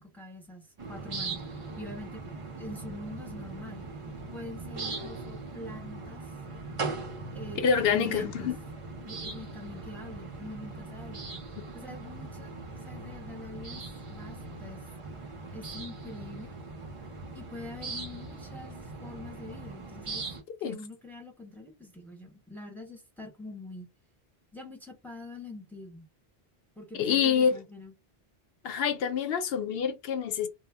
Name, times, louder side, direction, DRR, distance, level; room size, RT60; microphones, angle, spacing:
voice 1, 0.0-2.2 2.5-3.9 4.3-6.2 7.3-8.5 9.0-11.2 11.7-12.5 12.8-13.8 14.1-14.8 15.5-16.5 17.3-20.2 20.6-23.9 24.5-26.0 26.8-27.9, left 2 dB, ahead, 0.6 m, -44 dB
sound 1, 0.8-20.4, right 3 dB, 40° right, 0.5 m, -40 dB
voice 2, 7.6-8.5 20.6-20.8 27.0-27.6 28.6-30.5, left 7 dB, 70° left, 0.8 m, -26 dB
2.1 x 2.0 x 3.3 m
omnidirectional pair, 1.0 m